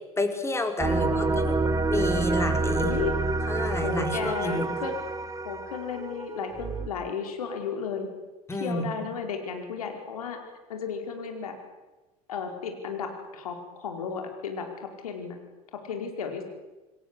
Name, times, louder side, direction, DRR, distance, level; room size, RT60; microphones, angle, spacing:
voice 1, 0.2-1.6 1.9-2.9 3.5-4.8 8.5-9.1, left 1 dB, 15° left, 7 dB, 4.6 m, -30 dB
sound 1, 0.8-6.9, right 3 dB, 20° right, 2.1 m, -28 dB
voice 2, 0.9-1.4 2.8-3.1 3.8-4.9 5.4-8.1 8.5-10.4 10.7-11.5 12.3-15.4 15.7-16.4, left 6 dB, 75° left, 5 dB, 4.8 m, -34 dB
27.5 x 22.0 x 8.4 m, 1.1 s
figure-of-eight pair, 70°, 19 cm